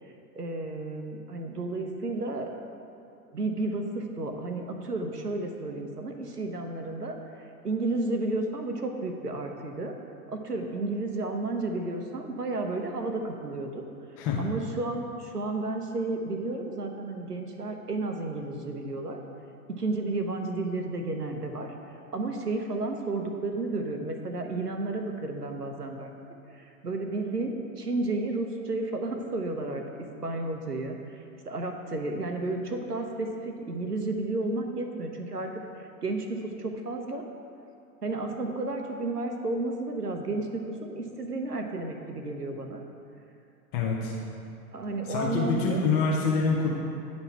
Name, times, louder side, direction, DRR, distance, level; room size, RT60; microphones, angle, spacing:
voice 1, 0.3-2.5 3.3-9.9 10.3-13.9 14.4-19.2 19.8-21.7 22.1-26.1 26.5-29.8 30.2-37.2 38.0-42.8 44.7-45.8, right 2 dB, 85° right, 4 dB, 0.8 m, -32 dB
voice 2, 43.7-44.1 45.1-46.7, left 4 dB, 30° left, -3 dB, 0.7 m, -26 dB
9.6 x 4.2 x 4.5 m, 2.6 s
figure-of-eight pair, 95°, 46 cm